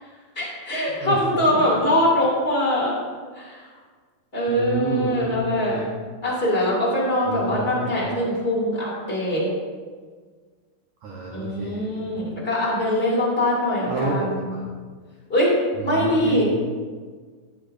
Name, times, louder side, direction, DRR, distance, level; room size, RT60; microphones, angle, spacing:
voice 1, 0.3-2.9 3.3-3.7 4.3-5.8 6.2-9.5 11.3-14.6 15.3-15.5 15.8-16.5, left 1 dB, 20° left, -6 dB, 2.0 m, -23 dB
voice 2, 1.0-1.6 4.5-5.9 7.3-7.9 11.0-12.2 13.9-14.6 15.8-16.5, right 3 dB, 80° right, -3 dB, 1.6 m, -29 dB
14.0 x 9.0 x 2.7 m, 1.5 s
omnidirectional pair, 5.0 m